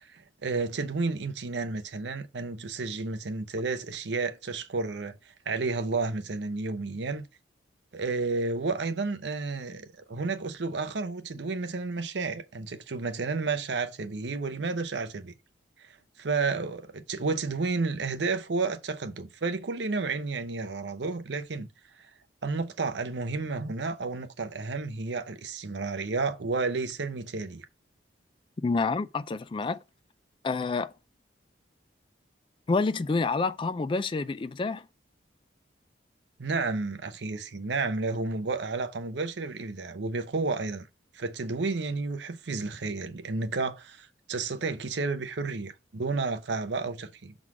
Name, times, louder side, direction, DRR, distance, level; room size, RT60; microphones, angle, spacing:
voice 1, 0.0-7.2 7.9-15.3 15.8-21.7 22.0-22.1 22.4-27.7 36.4-40.9 41.1-47.3, right 3 dB, 65° right, 0.7 m, -31 dB
voice 2, 28.6-29.8 30.4-30.9 32.7-34.9, left 3 dB, 25° left, 0.3 m, -28 dB
6.1 x 3.8 x 4.8 m
head